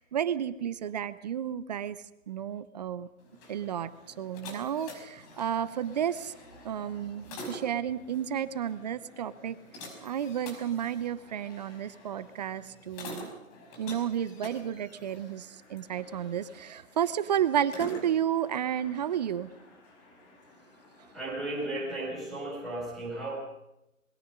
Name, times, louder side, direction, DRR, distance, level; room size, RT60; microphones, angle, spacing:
voice 1, 0.0-2.0 2.3-3.1 3.5-3.9 4.2-6.3 6.6-9.6 10.0-13.3 13.8-19.5, right 9 dB, 30° right, 16 dB, 0.9 m, -32 dB
sound 1, 3.2-21.7, left 1 dB, 25° left, 5.5 m, -48 dB
voice 2, 21.1-23.4, right 2 dB, ahead, -5 dB, 7.7 m, -35 dB
26.0 x 21.5 x 5.4 m, 0.86 s
figure-of-eight pair, 140°, 41 cm